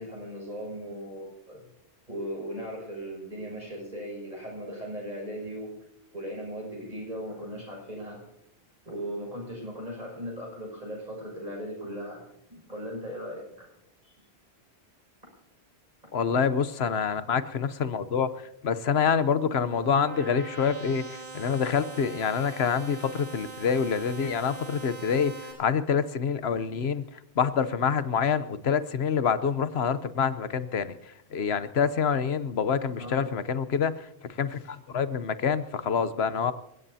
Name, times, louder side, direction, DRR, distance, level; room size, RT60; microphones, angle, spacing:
voice 1, 0.0-1.6 2.1-5.7 6.1-8.2 8.8-13.7 14.0-14.2 32.9-33.3, equal, 40° right, -2 dB, 6.4 m, -38 dB
voice 2, 16.1-36.5, left 6 dB, 70° left, 13 dB, 1.1 m, -27 dB
sound 1, 19.0-25.5, right 3 dB, 70° right, 5.8 m, -42 dB
28.5 x 16.5 x 2.8 m, 0.83 s
omnidirectional pair, 1.1 m